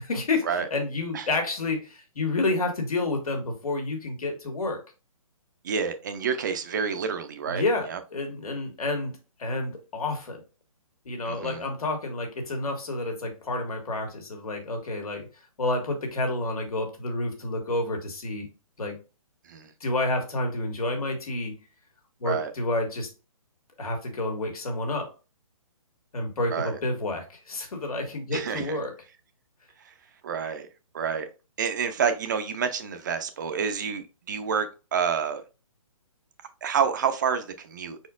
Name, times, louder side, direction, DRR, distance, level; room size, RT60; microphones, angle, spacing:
voice 1, 0.0-4.8 7.4-10.4 11.0-15.3 15.6-18.5 18.8-19.0 19.8-21.5 22.2-23.1 23.8-25.1 26.1-28.9, left 2 dB, 80° left, 1.8 m, -29 dB
voice 2, 5.6-7.6 7.9-8.0 11.2-11.6 19.5-19.7 22.2-22.5 26.5-26.8 28.3-28.8 29.8-29.9 30.2-30.7 30.9-31.3 31.6-35.4 36.6-38.0, right 6 dB, 35° right, 0.5 m, -28 dB
4.9 x 4.3 x 2.4 m
hypercardioid pair, 160°, 18 cm